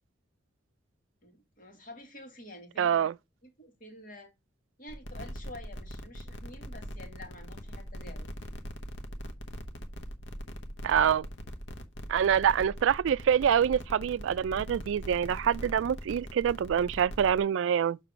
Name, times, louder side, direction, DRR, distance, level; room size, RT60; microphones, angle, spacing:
voice 1, 1.2-3.1 3.4-4.3 4.8-8.3 12.3-12.4, left 1 dB, 45° left, 2.0 m, -49 dB
voice 2, 2.8-3.1 10.8-11.3 12.1-18.0, right 8 dB, 80° right, 0.3 m, -26 dB
sound 1, 4.9-17.4, equal, 70° left, 1.1 m, -41 dB
6.8 x 3.3 x 6.1 m
head